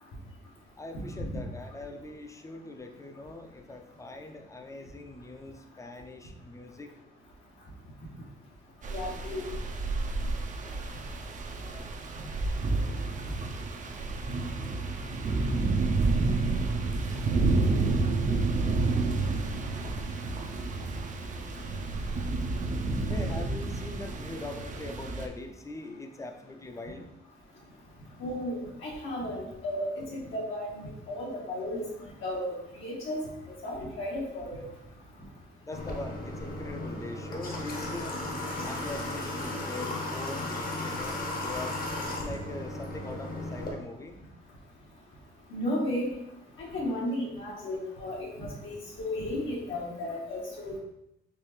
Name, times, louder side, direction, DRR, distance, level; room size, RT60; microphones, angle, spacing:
voice 1, 0.8-6.9 23.1-27.1 35.6-38.1 38.6-44.1, left 2 dB, 15° left, 5 dB, 0.5 m, -42 dB
sound 1, 8.8-25.3, right 3 dB, 40° right, 0.5 m, -30 dB
voice 2, 8.9-9.4 13.2-13.3 28.2-31.8 32.2-33.3 33.6-34.6 45.5-46.1 46.6-50.8, left 1 dB, 80° left, -4 dB, 1.5 m, -34 dB
Water / Water tap faucet, 35.7-43.7, left 2 dB, 45° left, 1.0 m, -35 dB
4.6 x 3.0 x 3.2 m, 0.82 s
cardioid pair, 90°, 20 cm